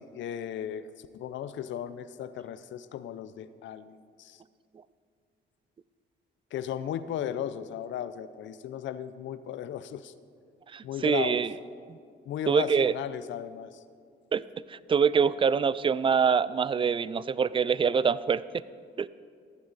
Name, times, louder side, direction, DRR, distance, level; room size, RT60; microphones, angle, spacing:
voice 1, 0.0-4.4 6.5-10.1 10.8-11.4 12.3-13.8, left 10 dB, 70° left, 14 dB, 0.6 m, -36 dB
voice 2, 10.7-11.5 12.5-12.9 14.3-14.4 14.7-18.6 19.0-19.1, right 6 dB, 25° right, 18 dB, 0.3 m, -25 dB
15.5 x 11.5 x 4.0 m, 2.2 s
cardioid pair, 90°, 20 cm